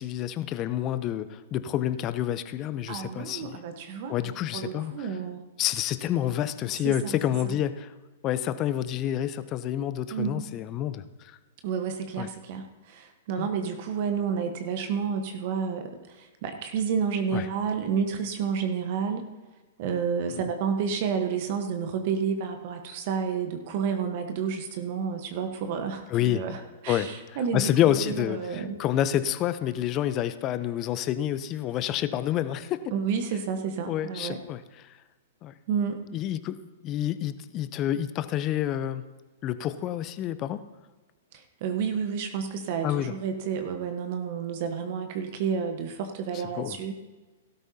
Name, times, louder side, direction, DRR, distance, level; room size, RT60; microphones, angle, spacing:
voice 1, 0.0-3.5 4.1-5.1 5.6-7.9 8.2-11.3 12.2-12.3 13.4-13.5 17.3-17.5 26.1-26.4 26.9-27.1 27.5-32.8 33.9-34.6 35.4-35.5 36.1-39.0 39.4-40.6 42.8-43.1 46.5-46.8, left 11 dB, 35° left, 13 dB, 0.7 m, -28 dB
voice 2, 2.9-5.4 6.8-7.2 7.4-7.6 10.1-10.4 11.6-19.3 19.8-27.7 28.0-28.8 32.9-34.4 35.7-36.0 41.3-46.9, right 6 dB, 50° right, 6 dB, 1.2 m, -30 dB
16.5 x 13.0 x 2.8 m, 1.2 s
hypercardioid pair, 115°, 0 cm